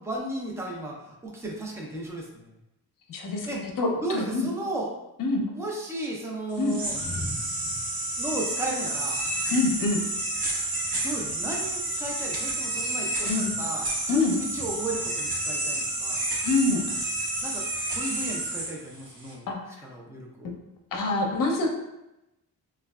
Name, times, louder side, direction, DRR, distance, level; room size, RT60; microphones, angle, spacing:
voice 1, 0.0-2.5 3.5-3.6 4.0-4.9 5.5-7.0 8.2-9.2 11.0-16.2 17.4-19.5 19.9-20.5, right 2 dB, 5° right, -2 dB, 0.5 m, -34 dB
voice 2, 3.1-4.5 5.2-5.5 6.6-6.8 9.5-10.0 13.3-13.5 14.1-14.4 16.4-17.0 19.5-19.6 20.4-20.5 20.9-21.7, left 3 dB, 55° left, 1 dB, 0.7 m, -26 dB
sound 1, 6.5-19.3, right 1 dB, 60° right, 1.0 m, -30 dB
3.2 x 2.3 x 2.3 m, 0.92 s
cardioid pair, 75°, 40 cm